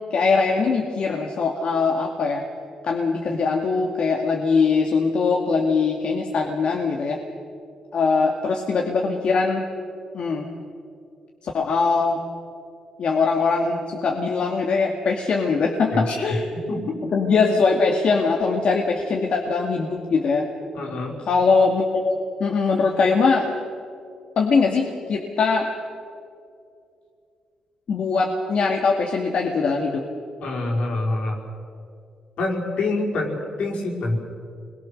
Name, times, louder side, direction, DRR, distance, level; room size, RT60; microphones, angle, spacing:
voice 1, 0.1-2.4 2.8-7.2 7.9-9.7 10.1-10.5 11.4-12.2 13.0-16.5 17.1-20.5 21.3-23.5 24.4-25.7 27.9-30.0, left 4 dB, 60° left, 1 dB, 2.3 m, -21 dB
voice 2, 15.9-16.2 16.7-17.0 20.8-21.2 30.4-31.4 32.4-34.2, left 2 dB, 75° left, -1 dB, 5.2 m, -26 dB
26.5 x 22.0 x 6.7 m, 2.4 s
cardioid pair, 105°, 2 cm